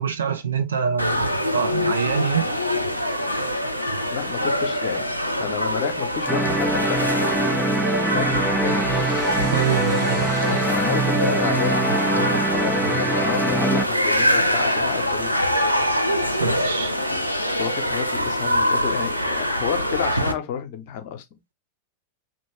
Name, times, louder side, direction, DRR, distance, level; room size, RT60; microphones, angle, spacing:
voice 1, 0.0-2.5 9.5-10.3 16.3-17.0, right 7 dB, 70° right, 0.5 m, -25 dB
sound 1, 1.0-20.3, equal, 90° left, 0.4 m, -24 dB
voice 2, 4.1-9.2 10.5-15.4 16.4-16.6 17.6-21.4, left 8 dB, 50° left, 0.7 m, -30 dB
sound 2, 6.3-13.8, right 2 dB, 5° right, 0.4 m, -24 dB
3.0 x 2.6 x 3.0 m
figure-of-eight pair, 90°, 0 cm